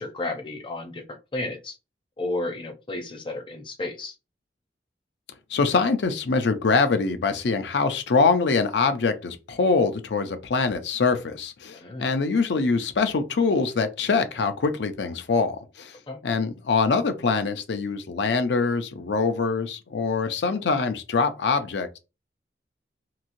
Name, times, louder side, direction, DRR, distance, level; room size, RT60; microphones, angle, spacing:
voice 1, 0.0-1.8 2.2-4.1 11.7-12.1 16.1-16.2, left 2 dB, 30° left, 0.6 m, -32 dB
voice 2, 5.5-16.0 16.2-22.0, left 4 dB, 80° left, 0.5 m, -24 dB
3.0 x 2.7 x 2.5 m
head